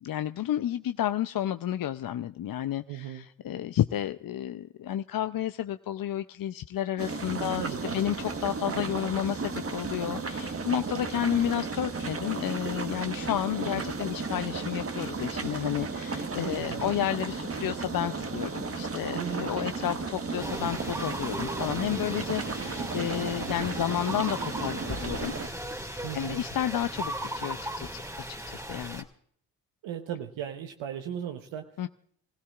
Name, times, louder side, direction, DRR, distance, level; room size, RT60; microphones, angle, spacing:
voice 1, 0.0-25.3 26.1-29.0 31.8-31.9, left 11 dB, 50° left, 11 dB, 0.6 m, -31 dB
voice 2, 2.9-3.3 7.4-8.0 16.4-16.9 19.1-19.5 26.0-26.4 29.8-31.7, right 9 dB, 80° right, 6 dB, 1.0 m, -37 dB
sound 1, 7.0-25.5, right 4 dB, 30° right, 1.3 m, -34 dB
sound 2, 20.4-29.0, equal, 5° right, 2.1 m, -37 dB
28.5 x 16.0 x 2.4 m, 0.62 s
supercardioid pair, 45°, 45 cm